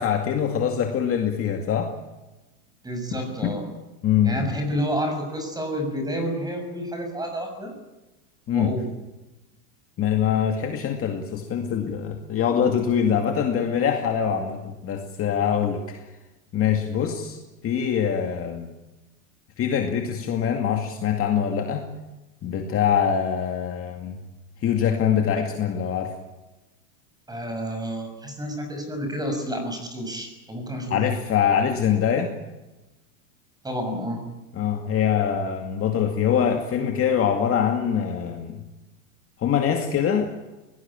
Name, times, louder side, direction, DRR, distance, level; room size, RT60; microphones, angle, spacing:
voice 1, 0.0-1.9 3.4-3.5 4.0-4.5 8.5-8.7 10.0-16.1 16.5-17.4 17.6-18.7 19.6-21.9 22.4-24.2 24.6-26.2 30.9-32.3 34.5-38.6 39.4-40.3, left 8 dB, 30° left, 4 dB, 2.3 m, -24 dB
voice 2, 2.8-3.6 4.2-7.7 8.5-8.9 27.3-31.0 33.6-34.2, equal, 10° right, 5 dB, 6.4 m, -29 dB
23.0 x 18.5 x 8.9 m, 1.1 s
supercardioid pair, 150°, 45 cm